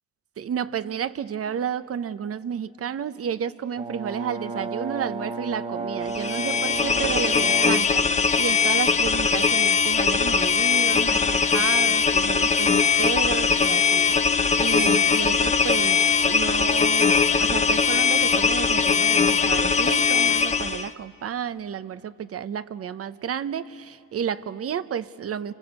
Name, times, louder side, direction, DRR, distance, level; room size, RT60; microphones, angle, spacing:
voice 1, 0.4-16.0 16.3-25.5, right 8 dB, 50° right, 14 dB, 0.9 m, -31 dB
Brass instrument, 3.8-7.9, right 3 dB, 20° right, 1.4 m, -32 dB
sound 1, 6.1-20.9, left 5 dB, 25° left, 0.9 m, -21 dB
28.5 x 25.0 x 8.2 m, 2.2 s
cardioid pair, 90°, 30 cm